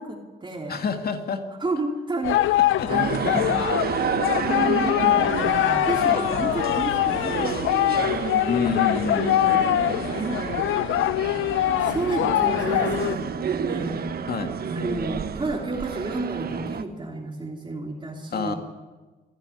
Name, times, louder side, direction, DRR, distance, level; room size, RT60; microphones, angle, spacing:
voice 1, 0.0-0.9 1.6-3.7 4.4-9.8 10.1-10.5 11.6-14.3 14.7-18.6, right 2 dB, 25° right, 1 dB, 3.2 m, -32 dB
voice 2, 0.7-1.5 2.3-2.4 2.8-2.9 3.3-3.5 8.5-9.7 14.3-14.5 18.3-18.5, left 6 dB, 50° left, 6 dB, 2.3 m, -28 dB
sound 1, 2.2-13.1, left 14 dB, 80° left, 0.7 m, -23 dB
sound 2, 2.9-16.8, right 7 dB, 50° right, 1.4 m, -30 dB
27.0 x 11.5 x 9.8 m, 1.3 s
cardioid pair, 90°, 20 cm